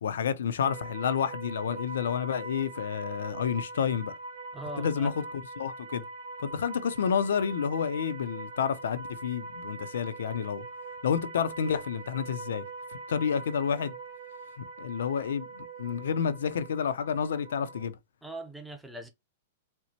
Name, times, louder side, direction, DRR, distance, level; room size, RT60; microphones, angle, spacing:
voice 1, 0.0-4.1 4.8-5.3 5.6-6.0 6.4-10.6 11.0-12.6 13.1-13.9 14.8-18.0, left 7 dB, 85° left, 0.5 m, -29 dB
sound 1, 0.6-17.9, right 3 dB, 70° right, 1.8 m, -42 dB
voice 2, 4.5-5.1 18.2-19.1, right 1 dB, 5° right, 0.6 m, -41 dB
4.3 x 2.1 x 2.8 m
hypercardioid pair, 145°, 0 cm